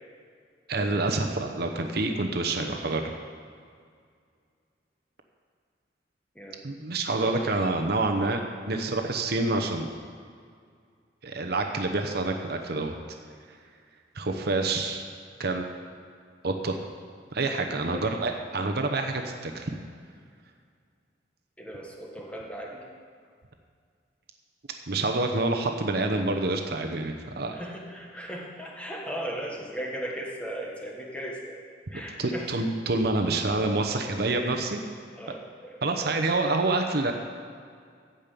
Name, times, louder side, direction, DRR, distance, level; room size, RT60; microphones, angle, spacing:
voice 1, 0.7-3.1 6.6-8.4 8.7-9.9 11.2-13.0 14.1-15.0 15.4-15.7 16.4-16.7 17.3-19.8 24.9-27.6 32.2-34.8 35.8-37.1, right 2 dB, 60° right, 4 dB, 0.9 m, -27 dB
voice 2, 7.1-7.7 17.9-18.2 21.6-22.8 27.5-31.6 31.9-32.5 33.3-33.5 35.1-36.2, right 1 dB, 5° left, -1 dB, 1.5 m, -38 dB
14.5 x 5.3 x 8.4 m, 2.2 s
head